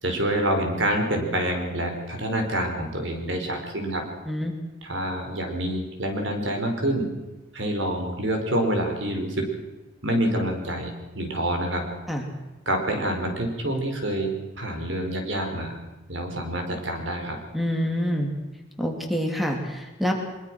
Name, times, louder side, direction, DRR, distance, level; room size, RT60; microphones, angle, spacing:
voice 1, 0.0-4.0 4.8-7.1 7.5-9.5 10.0-11.9 12.6-15.8 16.1-17.4, right 1 dB, 75° right, 4 dB, 4.8 m, -27 dB
voice 2, 17.5-18.3 18.8-20.1, equal, ahead, 3 dB, 2.9 m, -26 dB
23.5 x 22.5 x 6.3 m, 1.1 s
head